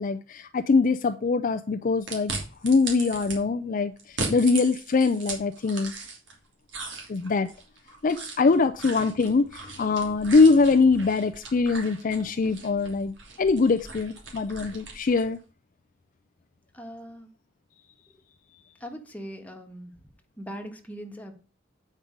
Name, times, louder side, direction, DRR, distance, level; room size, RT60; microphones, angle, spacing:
voice 1, 0.0-2.3 2.6-5.9 7.1-7.5 8.0-15.4, left 4 dB, 45° left, 8 dB, 0.4 m, -23 dB
sound 1, 2.1-3.4 4.0-6.4 6.7-15.3, right 3 dB, 75° right, 2.9 m, -38 dB
voice 2, 16.7-17.3 18.8-19.9 20.4-21.3, equal, 10° left, 3 dB, 1.5 m, -40 dB
8.5 x 5.3 x 5.1 m, 0.38 s
head